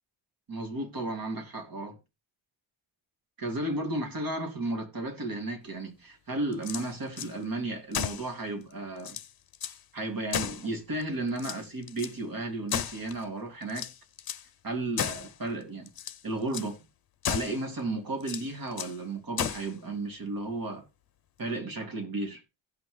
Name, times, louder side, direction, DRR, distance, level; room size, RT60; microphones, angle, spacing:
voice 1, 0.5-2.0 3.4-9.2 9.9-13.9 14.6-15.9 16.2-16.8 17.3-20.8 21.4-22.4, right 2 dB, 45° right, 2.6 m, -34 dB
sound 1, 6.5-7.3 7.9-8.3 8.7-8.8 9.0-9.8 10.3-11.0 11.4-12.2 12.7-13.3 13.7-14.5 15.0-15.3 15.9-16.2 16.5-16.7 17.2-17.6 18.2-19.0 19.4-19.7, left 9 dB, 50° left, 0.8 m, -34 dB
16.5 x 5.8 x 3.2 m
cardioid pair, 90°, 47 cm